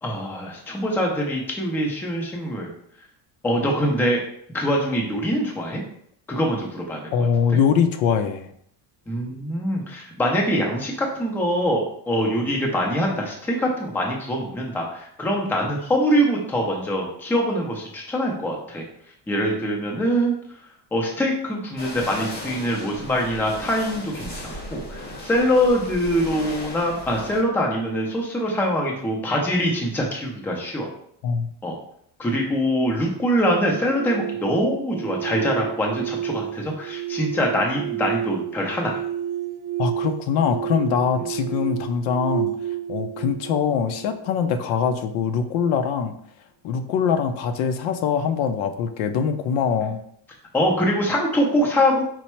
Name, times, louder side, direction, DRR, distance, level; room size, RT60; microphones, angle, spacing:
voice 1, 0.0-2.7 3.4-4.2 4.5-5.8 6.3-7.0 7.5-7.6 9.1-18.8 19.3-20.4 20.9-30.9 31.6-31.8 32.2-39.0 50.5-52.0, equal, 5° left, 0 dB, 0.4 m, -23 dB
voice 2, 7.1-8.5 31.2-31.5 39.8-42.5 42.9-46.2 46.6-50.0, left 6 dB, 80° left, 8 dB, 0.6 m, -23 dB
sound 1, 21.8-27.4, left 1 dB, 20° left, 0.7 m, -36 dB
sound 2, 33.7-44.7, right 12 dB, 90° right, 0.6 m, -31 dB
4.4 x 2.1 x 4.3 m, 0.68 s
cardioid pair, 155°, 46 cm